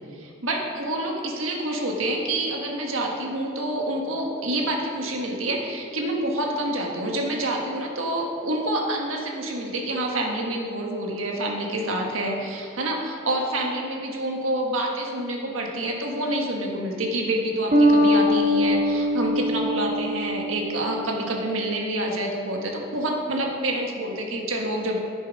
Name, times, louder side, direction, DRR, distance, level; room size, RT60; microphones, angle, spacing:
voice 1, 0.1-25.0, right 1 dB, 75° right, 0 dB, 1.5 m, -27 dB
Bass guitar, 17.7-21.2, left 1 dB, 35° right, 0.9 m, -22 dB
9.5 x 7.1 x 5.2 m, 2.5 s
head